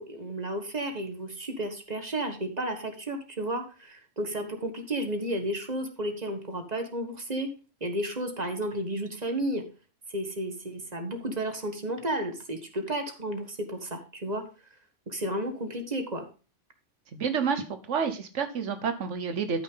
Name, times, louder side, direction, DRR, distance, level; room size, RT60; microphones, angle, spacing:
voice 1, 0.0-7.5 7.8-9.6 10.1-14.4 15.1-16.2, right 1 dB, 35° right, 5 dB, 1.6 m, -32 dB
voice 2, 17.1-19.6, right 6 dB, 90° right, 9 dB, 1.4 m, -29 dB
13.0 x 6.0 x 3.8 m, 0.34 s
omnidirectional pair, 1.2 m